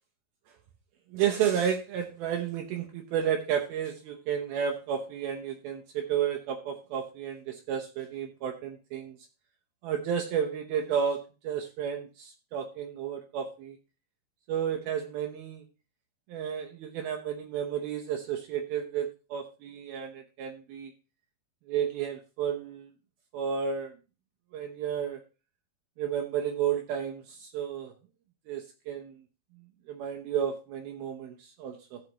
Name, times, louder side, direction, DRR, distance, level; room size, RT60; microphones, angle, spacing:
voice 1, 1.1-9.2 9.8-13.8 14.5-15.6 16.3-20.9 21.7-22.9 23.3-23.9 24.5-25.2 26.0-27.9 28.5-29.2 29.9-32.0, right 8 dB, 75° right, 3 dB, 2.6 m, -32 dB
15.5 x 6.6 x 2.9 m, 0.31 s
omnidirectional pair, 4.7 m